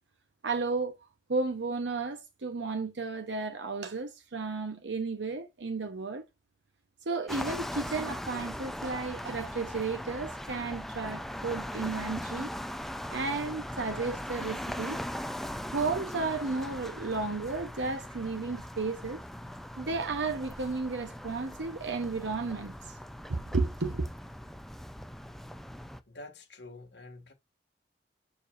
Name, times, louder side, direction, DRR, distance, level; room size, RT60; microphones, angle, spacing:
voice 1, 0.4-6.2 7.0-12.5 13.1-15.0 15.7-19.2 19.8-23.0 23.3-24.1, right 3 dB, 75° right, 0.9 m, -33 dB
sound 1, 7.3-26.0, equal, ahead, 0.5 m, -40 dB
voice 2, 26.1-27.3, left 2 dB, 70° left, 2.0 m, -47 dB
7.0 x 6.7 x 2.5 m
head